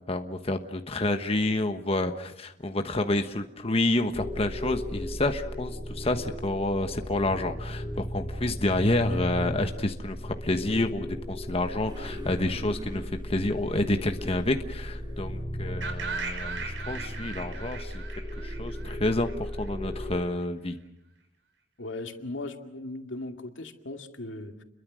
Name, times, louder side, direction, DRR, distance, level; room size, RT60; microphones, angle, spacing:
voice 1, 0.0-18.0 18.4-20.8, left 2 dB, 30° left, 6 dB, 1.2 m, -29 dB
sound 1, 4.1-20.2, equal, 10° left, 2.8 m, -36 dB
sound 2, 11.9-15.4, right 2 dB, 25° right, 1.5 m, -48 dB
sound 3, 15.8-19.7, right 4 dB, 75° right, 5.2 m, -38 dB
voice 2, 21.8-24.6, left 2 dB, 85° left, 5 dB, 2.3 m, -38 dB
30.0 x 22.5 x 6.3 m, 0.84 s
head